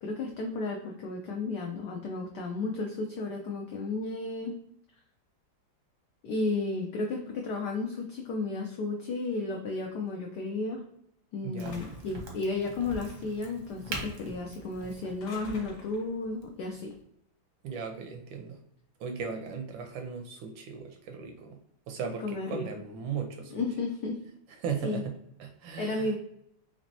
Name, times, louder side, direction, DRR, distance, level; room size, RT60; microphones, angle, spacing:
voice 1, 0.0-4.6 6.2-10.8 11.3-17.0 22.2-22.7 23.5-24.2 24.8-25.0 25.8-26.2, left 3 dB, 80° left, 1 dB, 0.9 m, -33 dB
voice 2, 11.4-11.8 17.6-18.6 19.0-21.6 21.9-23.5 24.6-26.1, right 6 dB, 75° right, 5 dB, 1.2 m, -37 dB
sound 1, 11.6-12.2 12.9-13.5 15.0-16.2, right 2 dB, 50° left, 1.6 m, -49 dB
Crack, 11.6-17.0, right 2 dB, 55° right, 0.8 m, -43 dB
4.0 x 3.2 x 2.6 m, 0.74 s
omnidirectional pair, 2.4 m